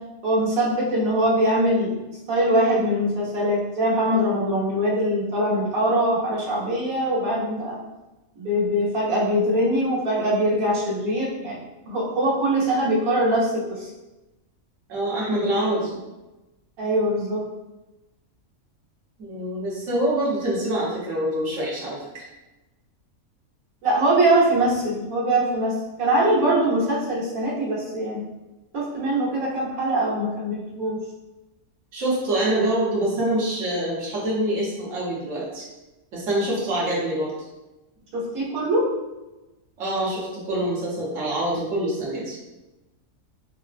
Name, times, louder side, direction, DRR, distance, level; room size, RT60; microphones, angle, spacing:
voice 1, 0.2-1.9 2.3-7.8 8.4-11.6 11.9-13.9 16.8-17.4 23.8-28.2 28.7-31.0 38.1-38.9, right 1 dB, 90° right, -6 dB, 1.4 m, -22 dB
voice 2, 14.9-16.0 19.2-22.2 31.9-35.6 36.1-37.3 39.8-42.4, right 1 dB, 65° right, -5 dB, 1.3 m, -25 dB
4.1 x 2.0 x 2.4 m, 1.0 s
omnidirectional pair, 1.5 m